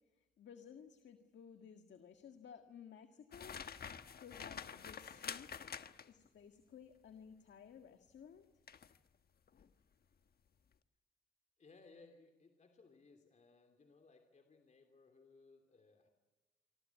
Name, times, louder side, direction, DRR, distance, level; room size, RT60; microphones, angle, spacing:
voice 1, 0.2-3.6 4.2-5.5 6.0-8.5, left 7 dB, 70° left, 7 dB, 1.8 m, -56 dB
sound 1, 3.3-6.3 8.7-9.0 9.5-9.7, left 7 dB, 55° left, 1.3 m, -48 dB
voice 2, 11.6-16.1, left 3 dB, 40° left, 5 dB, 3.1 m, -63 dB
28.5 x 25.0 x 8.4 m, 1.2 s
wide cardioid pair, 155°, 19 cm